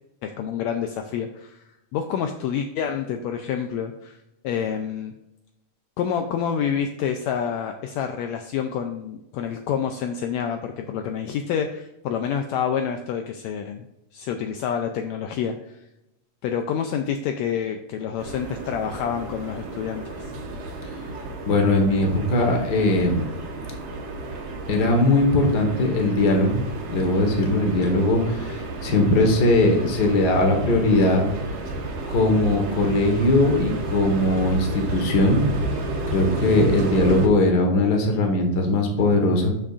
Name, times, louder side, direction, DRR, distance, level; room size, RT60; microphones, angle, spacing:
voice 1, 0.2-1.6 1.9-4.2 4.4-5.1 6.0-13.8 14.1-15.6 16.4-20.3, left 8 dB, 85° left, 5 dB, 1.6 m, -28 dB
sound 1, 18.2-37.3, right 2 dB, 85° right, 3.1 m, -31 dB
voice 2, 21.5-23.3 24.7-26.6 26.9-31.2 32.0-35.4 36.1-39.5, left 2 dB, 45° left, 2 dB, 1.4 m, -20 dB
12.0 x 6.2 x 2.5 m, 0.89 s
omnidirectional pair, 3.7 m